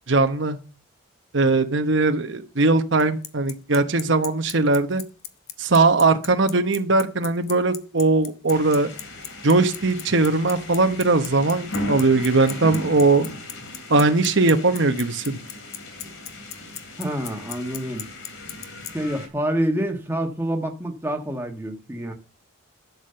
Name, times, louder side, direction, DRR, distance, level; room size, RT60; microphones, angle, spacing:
voice 1, 0.1-0.6 1.3-5.0 5.6-8.9 9.4-13.3 13.9-15.4, right 3 dB, 60° right, 1.0 m, -20 dB
Bicycle, 3.0-18.9, left 11 dB, 50° left, 1.0 m, -35 dB
sound 1, 8.5-19.3, left 1 dB, 75° left, 2.9 m, -37 dB
voice 2, 17.0-18.0 18.9-22.1, right 1 dB, 10° right, 1.5 m, -27 dB
12.0 x 7.3 x 6.8 m
head